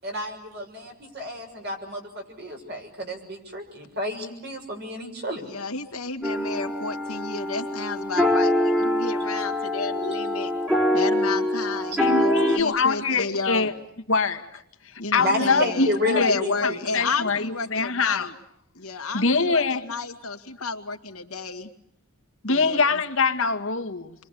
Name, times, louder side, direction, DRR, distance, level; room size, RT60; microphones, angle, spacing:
voice 1, 0.0-5.5 15.2-16.8, left 1 dB, 50° right, 3 dB, 6.6 m, -30 dB
voice 2, 5.4-10.5 10.9-13.7 15.0-18.3 18.8-21.7 22.5-22.9, left 3 dB, 90° left, 5 dB, 2.2 m, -31 dB
sound 1, 6.2-12.6, left 1 dB, 5° right, 2.8 m, -24 dB
voice 3, 12.0-13.7 14.1-14.5 14.8-16.3 16.6-18.3 19.1-19.8 22.4-24.1, left 4 dB, 65° left, 5 dB, 1.7 m, -24 dB
29.0 x 24.0 x 8.3 m, 0.75 s
head